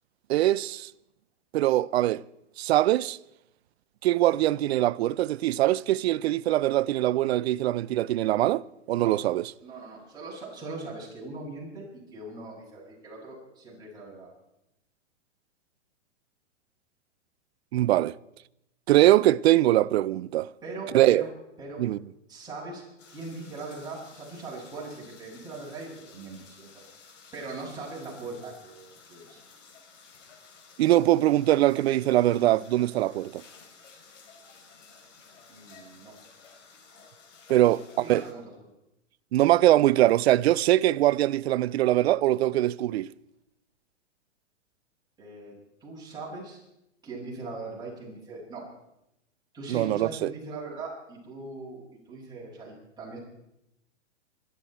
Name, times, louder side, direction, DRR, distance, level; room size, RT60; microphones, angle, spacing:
voice 1, 0.3-0.9 1.5-2.2 2.6-3.2 4.0-9.5 17.7-18.2 18.9-20.5 20.9-21.3 21.8-22.0 30.8-33.4 37.5-38.2 39.3-43.1 49.7-50.3, right 14 dB, 60° right, 0.6 m, -22 dB
voice 2, 9.6-14.3 20.6-21.3 21.6-21.8 22.3-22.8 23.1-29.4 35.5-36.1 37.6-38.5 45.2-45.5 45.8-46.6 47.0-48.7 49.5-53.2, right 3 dB, 10° right, 7.4 m, -40 dB
sound 1, 23.0-38.3, left 5 dB, 80° left, 3.6 m, -53 dB
24.0 x 13.0 x 4.5 m
hypercardioid pair, 135°, 37 cm